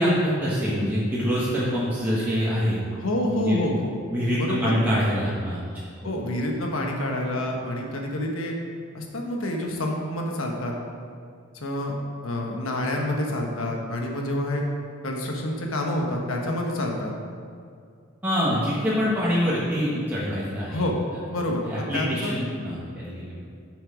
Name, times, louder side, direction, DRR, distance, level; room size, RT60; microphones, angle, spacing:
voice 1, 0.0-2.8 3.3-3.6 4.1-5.6 18.2-20.8 21.6-23.3, equal, 10° right, -10 dB, 1.4 m, -25 dB
voice 2, 2.9-3.9 4.4-4.7 6.0-8.5 8.9-10.7 11.6-11.9 12.2-14.6 15.0-17.1 20.7-21.0 21.3-22.4, left 1 dB, 70° left, 1 dB, 1.3 m, -28 dB
9.3 x 6.3 x 5.0 m, 2.2 s
head